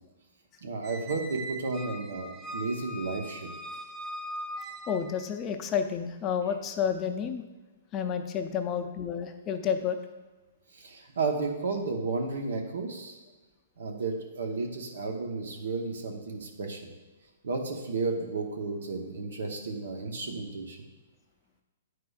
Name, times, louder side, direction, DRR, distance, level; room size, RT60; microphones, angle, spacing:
voice 1, 0.6-3.5 10.7-13.2 13.8-16.8 17.4-20.9, right 3 dB, 80° right, 3 dB, 1.0 m, -33 dB
Squeak, 0.8-5.3, equal, 30° right, 0.6 m, -40 dB
voice 2, 4.9-7.4 7.9-10.0, left 7 dB, 25° left, 6 dB, 0.5 m, -30 dB
9.2 x 4.8 x 2.4 m, 1.3 s
hypercardioid pair, 135°, 0 cm